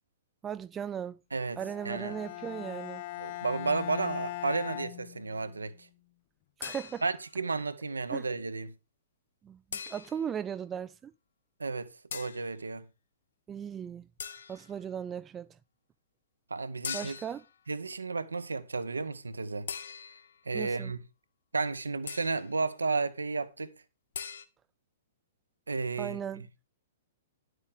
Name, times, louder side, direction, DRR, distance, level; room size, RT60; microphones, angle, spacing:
voice 1, 0.4-1.2 1.6-3.0 6.6-7.0 8.1-8.3 9.4-11.1 13.5-14.1 14.5-15.5 16.9-17.4 20.5-20.9 26.0-26.5, right 8 dB, 20° right, 0.4 m, -37 dB
Bowed string instrument, 1.6-5.7, left 18 dB, 40° left, 0.5 m, -40 dB
voice 2, 1.8-2.1 3.2-5.9 7.0-8.7 11.6-12.9 16.5-17.2 17.7-19.7 20.5-21.0 21.5-23.7 25.7-26.5, right 4 dB, 75° right, 0.9 m, -33 dB
sound 1, 6.6-7.3 9.7-10.4 12.1-12.5 14.2-14.8 16.8-17.5 19.7-20.4 22.1-22.5 24.1-24.5, left 7 dB, 60° left, 0.9 m, -41 dB
11.0 x 8.0 x 3.6 m
figure-of-eight pair, 110°, 0 cm